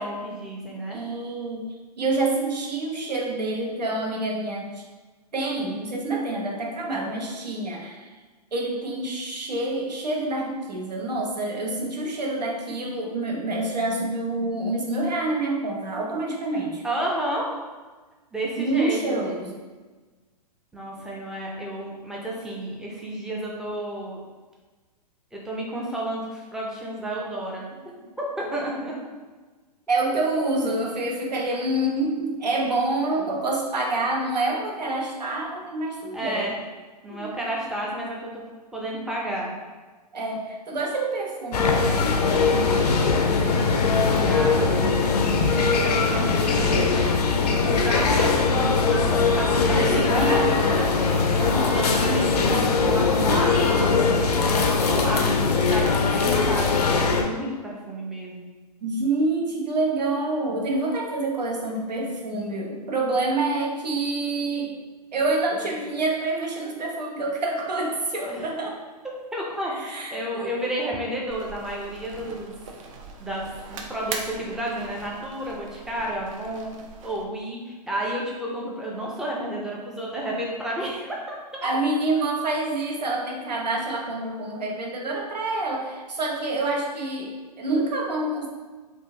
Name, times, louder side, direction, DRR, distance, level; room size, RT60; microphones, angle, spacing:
voice 1, 0.0-1.0 16.8-17.5 18.3-19.2 20.7-24.2 25.3-27.7 28.4-28.9 36.1-36.6 37.0-38.3 38.7-39.5 42.5-46.9 47.4-51.4 51.7-58.4 68.3-68.5 69.3-72.5 73.2-76.7 77.0-81.3, right 1 dB, 5° right, -3 dB, 0.5 m, -31 dB
voice 2, 0.9-1.7 2.0-4.8 5.3-8.1 8.5-16.8 18.6-19.6 29.9-36.5 37.1-37.3 40.1-43.3 49.7-50.5 51.4-51.8 58.8-64.8 65.1-68.8 69.7-70.6 70.9-71.0 81.6-88.5, right 2 dB, 80° right, -1 dB, 0.8 m, -27 dB
sound 1, 41.5-57.2, left 4 dB, 70° left, 0.5 m, -21 dB
sound 2, 71.3-77.2, right 4 dB, 50° right, 0.5 m, -40 dB
3.5 x 2.5 x 2.7 m, 1.3 s
hypercardioid pair, 115°, 21 cm